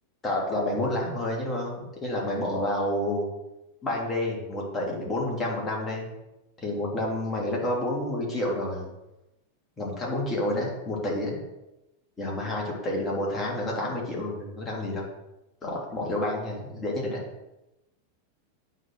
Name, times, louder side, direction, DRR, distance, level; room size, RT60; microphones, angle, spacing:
voice 1, 0.2-3.3 3.8-6.1 6.6-8.9 9.8-11.4 12.2-15.1 15.6-17.2, left 1 dB, 20° left, -2 dB, 3.0 m, -29 dB
8.9 x 4.3 x 6.2 m, 0.95 s
figure-of-eight pair, 90°, 0 cm